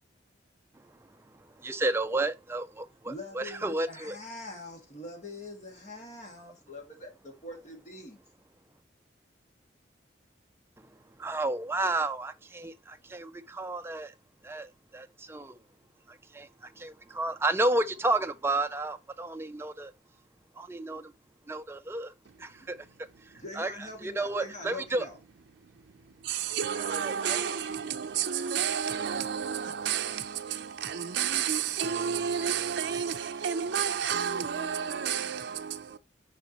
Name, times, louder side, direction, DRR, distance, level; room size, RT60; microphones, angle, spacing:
voice 1, 1.6-4.2 11.2-14.1 14.4-15.6 16.1-19.9 20.6-21.1 21.5-22.1 22.4-22.8 23.6-23.7 24.0-25.1 26.8-27.4, right 2 dB, 15° right, 0.4 m, -32 dB
voice 2, 3.0-8.2 23.3-25.2, left 2 dB, 40° left, 2.1 m, -43 dB
voice 3, 26.1-36.0, right 8 dB, 75° right, 0.5 m, -31 dB
6.9 x 5.1 x 2.9 m
head